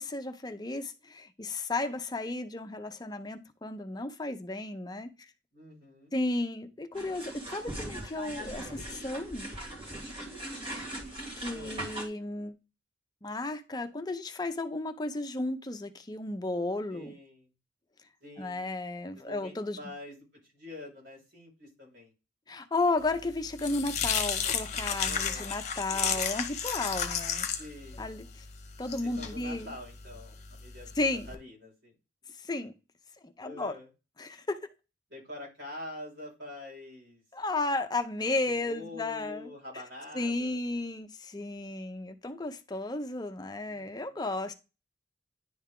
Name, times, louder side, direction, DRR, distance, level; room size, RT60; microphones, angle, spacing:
voice 1, 0.0-5.3 6.1-9.5 11.4-12.6 13.2-17.2 18.4-19.8 22.5-27.5 28.0-28.4 28.8-29.7 31.0-31.3 32.4-32.7 33.2-33.7 34.2-34.6 37.3-39.8 40.1-44.5, left 2 dB, 20° left, 0.6 m, -34 dB
voice 2, 5.5-6.1 11.5-11.8 16.9-17.5 18.2-18.7 19.2-20.1 20.5-22.1 25.0-25.5 27.6-28.0 29.0-30.9 31.3-31.9 33.4-33.9 35.1-37.2 38.5-40.6 43.6-44.2, left 1 dB, 85° right, 4.2 m, -46 dB
sound 1, 6.9-12.1, right 1 dB, 30° right, 2.0 m, -40 dB
sound 2, 23.1-31.3, left 7 dB, 40° left, 0.9 m, -33 dB
10.0 x 3.5 x 3.7 m
head